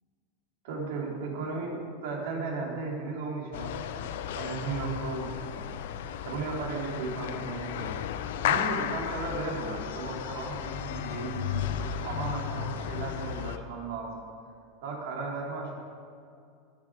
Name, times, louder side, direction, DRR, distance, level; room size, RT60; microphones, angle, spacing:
voice 1, 0.6-5.7 6.2-8.0 8.4-14.3 14.8-15.8, right 3 dB, 75° right, -2 dB, 3.5 m, -35 dB
sound 1, 3.5-13.6, left 9 dB, 80° left, 0.7 m, -34 dB
20.5 x 7.3 x 4.9 m, 2.5 s
supercardioid pair, 115°, 0 cm